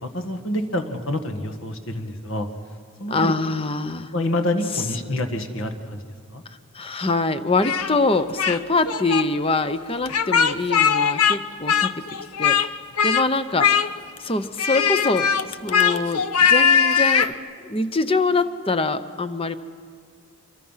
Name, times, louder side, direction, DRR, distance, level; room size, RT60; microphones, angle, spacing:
voice 1, 0.0-2.5 3.0-3.3 4.1-6.0 6.3-6.4, left 1 dB, 60° left, 6 dB, 1.7 m, -27 dB
voice 2, 3.1-4.1 6.7-11.9 12.4-12.7 13.0-13.8 14.2-17.4 17.6-19.6, left 3 dB, 25° left, 11 dB, 0.8 m, -24 dB
Speech, 7.6-8.6 8.9-9.2 10.1-11.4 11.7-12.7 13.0-13.3 13.6-14.2 14.6-17.3, left 7 dB, 90° left, 0.8 m, -20 dB
26.5 x 24.0 x 5.7 m, 2.1 s
head